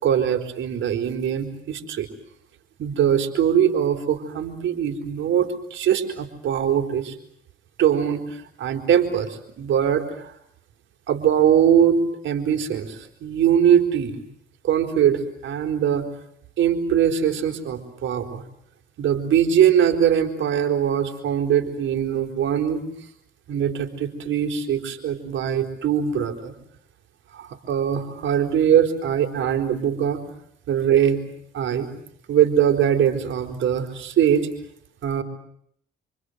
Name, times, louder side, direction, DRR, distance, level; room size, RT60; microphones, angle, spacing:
voice 1, 0.0-2.1 2.8-7.1 7.8-9.3 9.6-10.3 11.1-14.2 14.6-16.1 16.6-18.4 19.0-22.8 23.5-26.5 27.3-30.2 30.7-31.2 31.5-31.9 32.3-34.5 35.0-35.2, right 9 dB, 75° right, 6 dB, 4.2 m, -21 dB
28.0 x 26.5 x 8.0 m, 0.70 s
cardioid pair, 90°, 20 cm